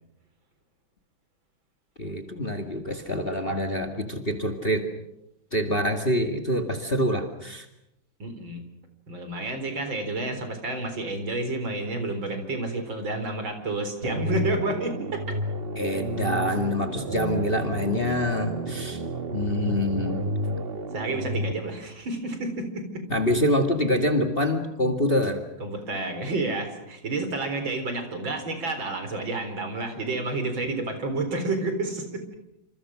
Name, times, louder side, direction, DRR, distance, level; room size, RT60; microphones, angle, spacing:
voice 1, 2.0-4.9 5.5-7.7 15.8-19.0 19.3-20.2 23.1-25.4, left 1 dB, 25° left, 6 dB, 2.1 m, -26 dB
voice 2, 8.2-8.6 9.1-15.2 20.9-23.0 25.6-32.2, right 2 dB, 60° right, 7 dB, 4.8 m, -30 dB
sound 1, 14.0-21.5, right 1 dB, 30° right, 1.2 m, -31 dB
28.0 x 27.5 x 6.3 m, 0.83 s
omnidirectional pair, 2.4 m